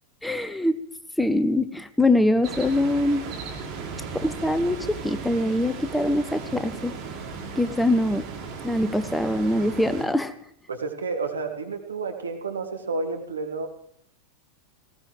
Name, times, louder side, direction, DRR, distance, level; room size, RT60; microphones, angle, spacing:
voice 1, 0.2-0.8 1.2-3.2 4.2-6.9 7.6-8.2 8.6-10.3, left 1 dB, 5° left, 12 dB, 0.7 m, -23 dB
sound 1, 2.4-10.1, right 5 dB, 35° right, 3.1 m, -36 dB
voice 2, 10.7-13.7, right 4 dB, 70° right, 4 dB, 1.7 m, -30 dB
19.0 x 15.5 x 3.3 m, 0.71 s
figure-of-eight pair, 90°, 0 cm